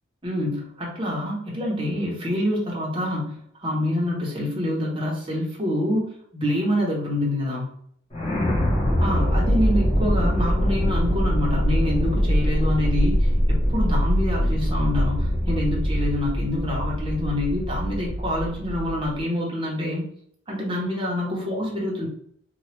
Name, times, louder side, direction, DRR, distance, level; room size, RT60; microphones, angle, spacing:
voice 1, 0.2-7.7 9.0-20.1 20.5-22.1, left 1 dB, 25° right, -3 dB, 0.7 m, -26 dB
sound 1, 8.1-19.2, equal, 30° left, 0.9 m, -23 dB
2.9 x 2.2 x 3.2 m, 0.64 s
head